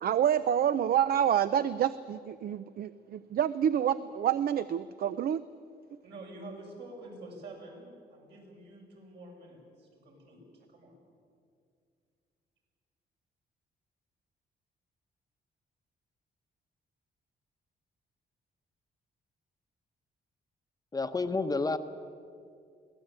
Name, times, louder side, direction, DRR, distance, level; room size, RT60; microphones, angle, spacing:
voice 1, 0.0-5.4, right 9 dB, 60° right, 14 dB, 0.6 m, -28 dB
voice 2, 6.0-10.4 10.7-10.9, right 2 dB, 75° right, -1 dB, 7.1 m, -47 dB
voice 3, 20.9-21.8, left 3 dB, 20° left, 8 dB, 0.9 m, -29 dB
23.0 x 17.5 x 8.9 m, 2.2 s
cardioid pair, 140°, 18 cm